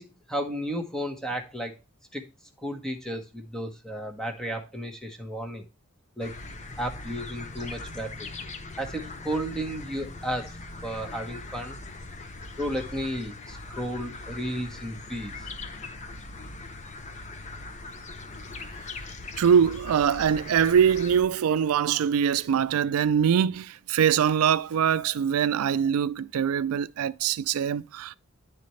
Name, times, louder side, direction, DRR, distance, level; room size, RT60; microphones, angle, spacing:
voice 1, 0.0-1.7 2.1-2.2 2.6-5.6 6.2-6.3 6.8-8.3 8.8-10.5 10.8-11.8 12.6-15.3, equal, 5° left, 1.1 m, -33 dB
sound 1, 6.2-21.2, left 2 dB, 35° left, 0.7 m, -40 dB
voice 2, 19.4-28.2, right 8 dB, 70° right, 0.3 m, -23 dB
10.0 x 4.2 x 3.1 m
head